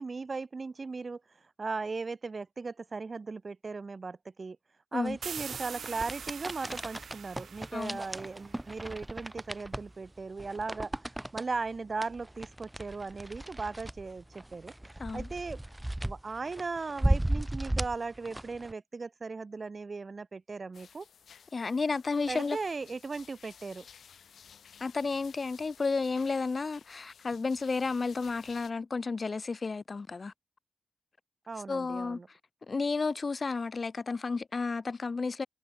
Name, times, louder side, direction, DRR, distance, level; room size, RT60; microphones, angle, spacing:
voice 1, 0.0-4.6 4.9-10.9 11.3-14.7 15.1-15.6 16.0-21.1 22.3-23.9 31.5-32.3, right 4 dB, 40° right, 0.8 m, -37 dB
sound 1, 5.1-18.7, right 1 dB, 10° right, 2.1 m, -36 dB
sound 2, 5.2-8.8, right 7 dB, 75° right, 1.6 m, -43 dB
sound 3, 20.7-28.7, left 7 dB, 80° left, 3.5 m, -55 dB
voice 2, 21.5-22.6 24.8-30.3 31.7-32.2 32.7-35.5, left 4 dB, 40° left, 1.7 m, -32 dB
wide cardioid pair, 95°, 0 cm